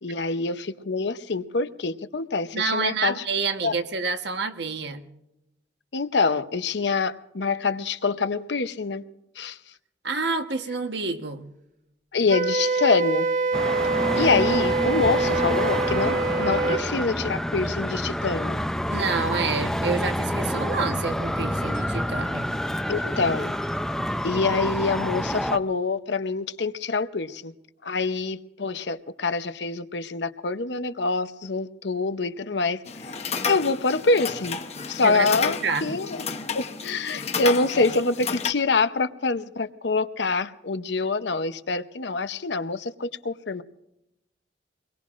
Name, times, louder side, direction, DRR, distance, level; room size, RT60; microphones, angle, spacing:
voice 1, 0.0-3.2 3.6-3.7 5.9-9.0 9.4-9.6 12.1-13.3 14.1-18.6 22.9-23.5 24.2-27.5 27.8-33.1 33.5-34.6 34.9-36.2 36.5-43.6, left 3 dB, 70° left, 0.8 m, -26 dB
voice 2, 2.5-5.1 10.0-11.5 18.9-22.5 35.0-35.9, right 4 dB, 65° right, 1.2 m, -28 dB
Wind instrument woodwind instrument, 12.3-16.8, right 3 dB, 40° right, 0.8 m, -25 dB
Traffic noise roadway noise, 13.5-25.6, equal, ahead, 0.5 m, -28 dB
sound 1, 32.9-38.5, left 5 dB, 35° left, 0.9 m, -31 dB
25.0 x 21.5 x 2.5 m
head